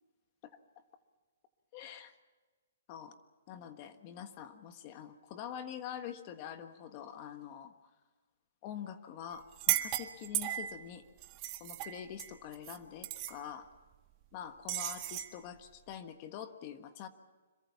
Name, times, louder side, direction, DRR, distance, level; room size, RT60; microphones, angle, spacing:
voice 1, 1.7-2.1 2.9-3.2 3.5-7.7 8.6-11.0 11.6-13.7 14.3-17.1, left 9 dB, 30° left, 8 dB, 1.4 m, -45 dB
sound 1, 9.5-10.8 11.2-12.8 13.0-13.3 14.7-15.3, right 14 dB, 25° right, 1.6 m, -35 dB
26.5 x 23.0 x 5.9 m, 1.3 s
hypercardioid pair, 165°, 0 cm